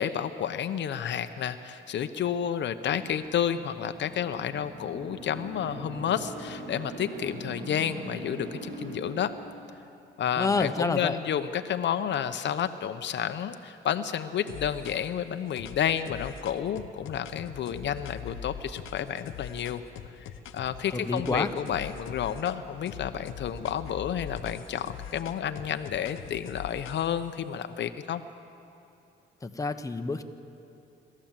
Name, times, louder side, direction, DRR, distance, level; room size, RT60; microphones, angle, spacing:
voice 1, 0.0-9.3 10.2-19.8 20.2-28.2, left 9 dB, 65° left, 9 dB, 0.8 m, -31 dB
sound 1, 3.3-10.0, right 1 dB, 70° right, 3.5 m, -42 dB
voice 2, 10.4-11.2 20.9-21.5 29.4-30.2, left 3 dB, 15° left, 7 dB, 1.1 m, -28 dB
sound 2, 14.5-15.2 15.6-20.8 21.2-22.6 22.9-27.3, left 8 dB, 85° left, 1.0 m, -42 dB
26.5 x 13.5 x 7.5 m, 2.6 s
cardioid pair, 90°, 20 cm